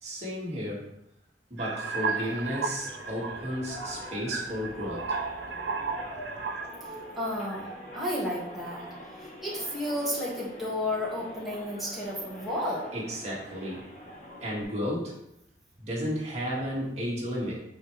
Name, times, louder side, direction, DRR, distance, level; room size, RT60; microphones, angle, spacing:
voice 1, 0.0-0.9 1.5-5.0 12.9-13.8 14.4-15.1 15.8-17.6, equal, 40° right, -4 dB, 2.1 m, -33 dB
sound 1, 1.6-6.8 7.4-7.9, right 4 dB, 70° right, 0.6 m, -34 dB
sound 2, 1.8-14.6, equal, 40° left, 1.3 m, -45 dB
voice 2, 7.2-7.7 7.9-8.9 9.2-12.9, left 1 dB, ahead, -8 dB, 2.0 m, -32 dB
10.0 x 4.5 x 3.4 m, 0.81 s
head